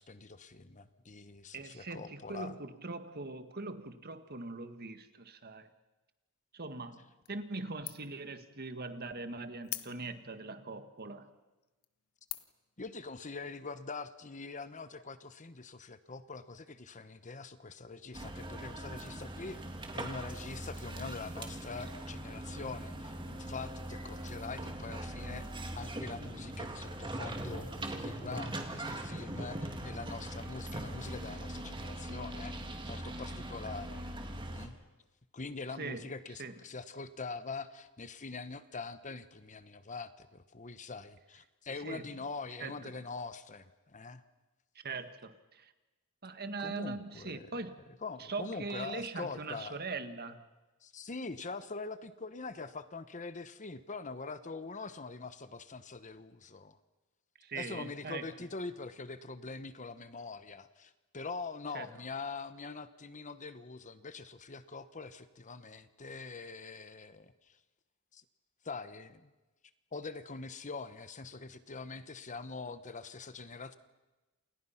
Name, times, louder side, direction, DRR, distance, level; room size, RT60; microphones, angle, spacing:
voice 1, 0.0-2.6 12.8-19.6 19.9-34.1 34.5-34.8 35.3-44.2 46.6-47.6 48.0-49.8 50.8-56.8 57.5-67.6 68.1-68.2 68.6-69.3 69.9-73.7, left 4 dB, 35° left, 12 dB, 1.1 m, -44 dB
voice 2, 1.5-5.7 6.5-11.3 35.8-36.0 36.4-36.5 41.8-42.1 42.6-42.9 44.8-45.7 46.2-47.7 48.2-50.5 57.4-58.3 61.7-61.9, right 3 dB, 45° right, 9 dB, 1.8 m, -41 dB
sound 1, 7.2-7.6 7.9-8.2 8.7-8.8 9.6-10.3 11.0-11.1 11.6-11.8 12.3-12.7, left 15 dB, 80° left, 1.2 m, -42 dB
sound 2, 18.1-34.7, right 1 dB, 25° right, 2.7 m, -41 dB
28.5 x 28.5 x 5.9 m, 1.1 s
head